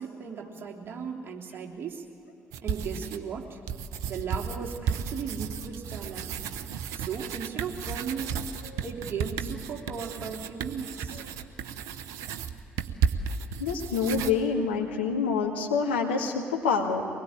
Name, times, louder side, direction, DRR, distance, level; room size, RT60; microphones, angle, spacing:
voice 1, 0.0-2.0 2.6-3.6 4.1-6.3 6.9-8.4 8.8-11.2, right 6 dB, 45° right, 0 dB, 3.1 m, -36 dB
sound 1, 2.5-3.3 3.7-14.3, right 7 dB, 65° right, 1.0 m, -33 dB
voice 2, 13.6-17.0, left 5 dB, 80° left, 1 dB, 2.0 m, -26 dB
23.5 x 20.5 x 8.7 m, 2.9 s
figure-of-eight pair, 50°, 6 cm